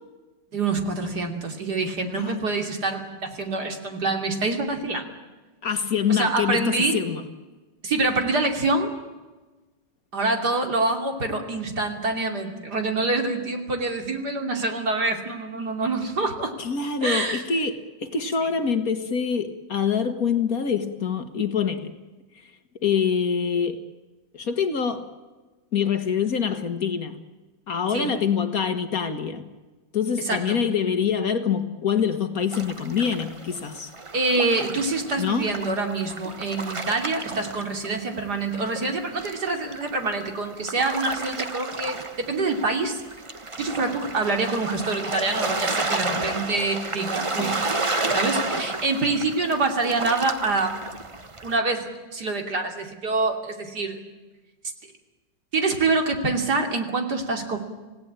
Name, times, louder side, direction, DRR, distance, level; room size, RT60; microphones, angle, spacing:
voice 1, 0.5-5.1 6.1-7.0 7.8-8.9 10.1-16.5 17.0-17.4 27.9-28.1 30.2-30.6 34.1-43.0 43.6-47.6 48.1-50.8 51.4-54.0 55.5-57.6, right 3 dB, 60° right, 4 dB, 3.4 m, -26 dB
voice 2, 2.1-2.5 5.6-7.2 16.6-21.9 22.8-23.8 24.3-25.1 25.7-27.2 27.7-29.5 29.9-33.9 35.2-35.5 47.4-47.6, left 6 dB, 55° left, 9 dB, 1.8 m, -25 dB
sound 1, 32.5-38.2 38.5-51.6, right 3 dB, 20° right, 0.9 m, -31 dB
27.0 x 17.5 x 8.8 m, 1.2 s
omnidirectional pair, 2.0 m